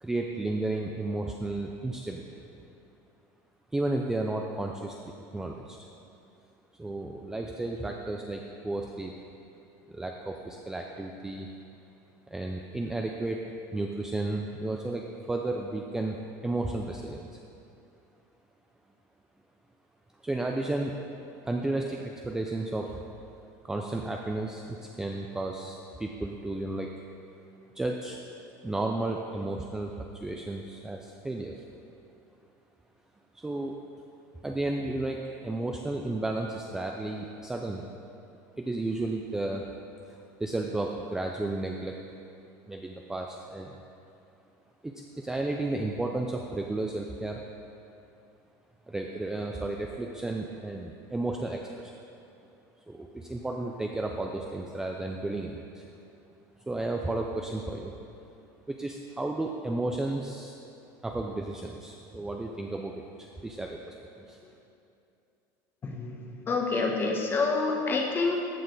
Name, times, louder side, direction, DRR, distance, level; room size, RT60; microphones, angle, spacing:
voice 1, 0.0-2.4 3.7-5.0 5.3-5.8 6.8-9.1 9.9-11.5 12.3-13.4 13.7-17.3 20.2-21.0 21.5-23.0 23.6-26.9 27.8-28.2 28.6-31.5 33.3-33.7 34.4-37.9 38.6-39.6 40.4-42.0 42.7-43.8 44.8-47.4 48.9-51.9 52.9-55.8 56.7-57.9 58.7-60.5 61.0-62.9 63.2-64.4, right 2 dB, 5° right, 1 dB, 0.4 m, -33 dB
voice 2, 65.8-68.3, left 4 dB, 20° left, 1 dB, 1.0 m, -28 dB
14.0 x 6.5 x 3.9 m, 2.7 s
cardioid pair, 165°, 10 cm